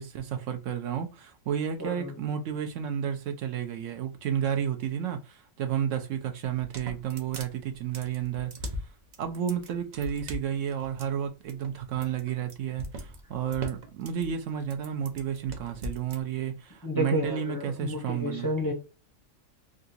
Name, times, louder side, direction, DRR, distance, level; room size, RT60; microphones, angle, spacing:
voice 1, 0.0-8.8 9.2-18.5, right 8 dB, 70° right, 0.9 m, -31 dB
voice 2, 1.8-2.1 16.8-18.7, equal, 20° left, 0.5 m, -31 dB
sound 1, 6.5-16.2, equal, 50° right, 0.5 m, -41 dB
3.7 x 2.3 x 2.6 m
omnidirectional pair, 1.5 m